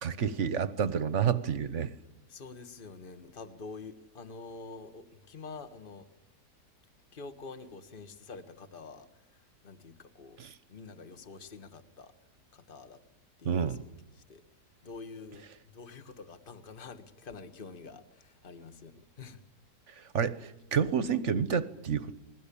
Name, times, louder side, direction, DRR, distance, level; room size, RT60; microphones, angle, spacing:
voice 1, 0.0-1.9 10.4-10.6 13.4-13.8 19.9-22.2, right 7 dB, 45° right, 1.3 m, -29 dB
voice 2, 2.3-6.1 7.1-10.4 10.7-12.1 12.5-13.0 13.4-13.8 14.1-14.4 14.8-19.4, left 4 dB, 30° left, 1.7 m, -47 dB
28.5 x 21.0 x 8.6 m
omnidirectional pair, 1.9 m